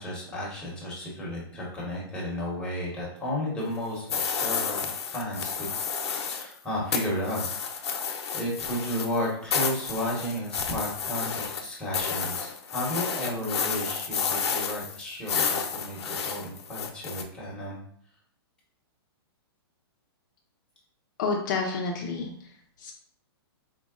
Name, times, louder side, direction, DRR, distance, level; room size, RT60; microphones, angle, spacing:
voice 1, 0.0-5.7 6.2-7.5 7.7-8.0 8.3-17.8, left 1 dB, 5° left, -6 dB, 1.1 m, -33 dB
sound 1, 4.1-6.5 6.9-17.2, left 6 dB, 90° left, 0.6 m, -31 dB
voice 2, 21.2-22.9, left 4 dB, 45° left, 0 dB, 0.7 m, -30 dB
4.5 x 2.0 x 3.7 m, 0.63 s
hypercardioid pair, 160°, 13 cm